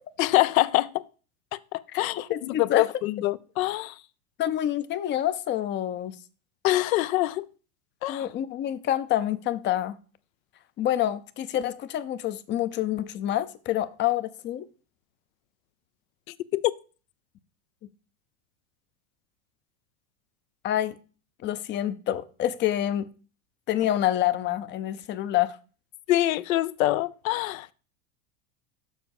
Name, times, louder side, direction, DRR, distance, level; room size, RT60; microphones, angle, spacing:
voice 1, 0.2-0.9 1.5-2.3 2.6-3.9 6.6-7.5 8.0-8.3 16.5-16.7 26.1-27.7, left 16 dB, 80° left, 0.7 m, -25 dB
voice 2, 2.3-2.9 4.4-6.2 8.1-10.0 10.8-14.7 20.6-21.0 21.4-23.1 23.7-25.6, left 12 dB, 30° left, 0.5 m, -27 dB
7.3 x 5.9 x 5.4 m
supercardioid pair, 130°, 41 cm